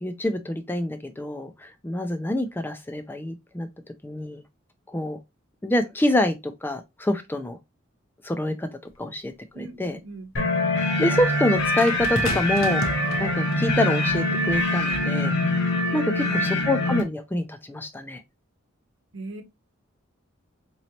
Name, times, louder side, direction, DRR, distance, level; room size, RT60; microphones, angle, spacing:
voice 1, 0.0-3.7 4.0-4.4 4.9-5.2 5.6-7.6 8.2-8.7 9.0-10.0 11.0-12.8 13.2-15.6 15.9-18.2, left 1 dB, 10° left, 0.4 m, -26 dB
sound 1, 8.9-9.0 11.8-13.7 14.6-14.8, left 2 dB, 85° left, 0.9 m, -32 dB
voice 2, 9.5-10.3 16.2-16.8 19.1-19.4, right 2 dB, 65° right, 0.9 m, -39 dB
sound 2, 10.4-17.0, left 1 dB, 60° left, 1.0 m, -24 dB
3.9 x 3.1 x 2.8 m
head